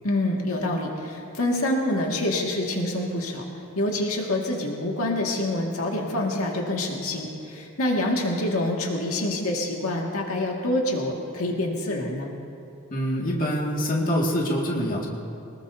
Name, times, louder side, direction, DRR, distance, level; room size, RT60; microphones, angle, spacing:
voice 1, 0.0-3.4 3.8-12.3, left 1 dB, 80° left, -1 dB, 2.1 m, -26 dB
voice 2, 12.9-15.1, equal, 40° left, -3 dB, 2.1 m, -25 dB
24.0 x 20.0 x 2.8 m, 2.8 s
head